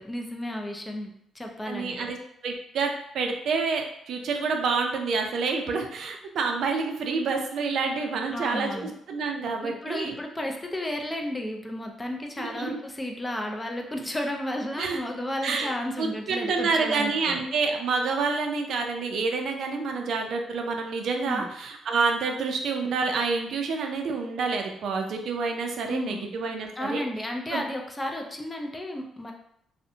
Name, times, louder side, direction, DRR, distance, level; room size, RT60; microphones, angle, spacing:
voice 1, 0.0-2.1 8.3-8.9 9.6-17.4 21.2-21.5 25.9-26.3 26.8-29.3, left 1 dB, 15° left, 2 dB, 0.4 m, -33 dB
voice 2, 1.7-2.2 2.4-2.9 3.1-10.2 12.4-12.8 14.8-15.0 15.4-15.7 16.0-27.0 27.5-27.6, right 4 dB, 70° right, 3 dB, 0.4 m, -28 dB
2.6 x 2.1 x 2.6 m, 0.72 s
cardioid pair, 90°, 0 cm